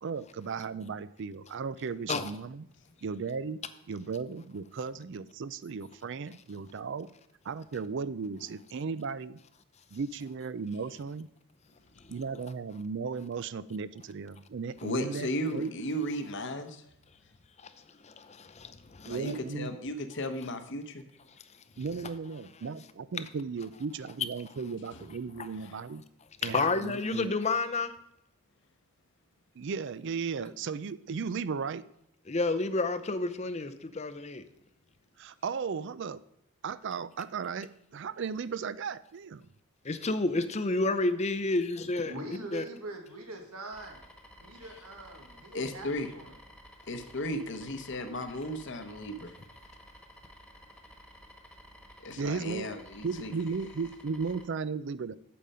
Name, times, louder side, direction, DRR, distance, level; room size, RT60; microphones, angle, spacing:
voice 1, 0.0-2.7 3.0-3.6 3.9-7.1 7.4-9.4 9.9-11.3 12.1-15.7 19.0-19.8 21.8-26.0 26.4-27.3 29.6-31.8 35.2-36.2 36.6-39.5 52.2-52.7 53.0-55.1, right 5 dB, 55° right, 0.4 m, -36 dB
voice 2, 14.8-16.8 19.1-21.0 45.5-46.1 46.9-49.3 52.0-53.3, left 1 dB, 55° left, 0.9 m, -35 dB
voice 3, 18.0-19.1 26.4-27.9 32.3-34.4 39.8-42.6, left 3 dB, 30° left, 0.6 m, -30 dB
voice 4, 42.1-44.0 44.4-45.9 46.1-46.3, right 2 dB, 90° right, 1.9 m, -43 dB
sound 1, 43.7-54.5, equal, 5° left, 1.4 m, -53 dB
8.6 x 7.6 x 5.5 m
head